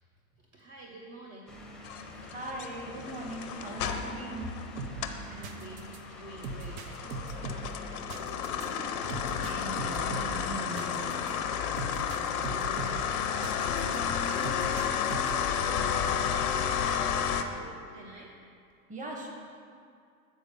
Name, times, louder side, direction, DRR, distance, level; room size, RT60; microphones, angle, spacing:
voice 1, 0.5-1.5 2.1-2.3 5.2-8.7 11.9-12.3 12.6-18.3, right 2 dB, 40° right, -2 dB, 0.9 m, -49 dB
sound 1, 1.5-8.1, left 1 dB, ahead, 0.7 m, -47 dB
sound 2, 1.8-5.3 5.6-17.4, left 8 dB, 80° left, 0.7 m, -32 dB
voice 2, 2.3-4.5 9.4-11.2 18.9-19.3, right 1 dB, 15° right, 0 dB, 1.2 m, -39 dB
sound 3, 4.8-14.0 14.4-15.5, right 2 dB, 70° right, 0.8 m, -40 dB
8.7 x 4.1 x 5.3 m, 2.3 s
hypercardioid pair, 110°, 43 cm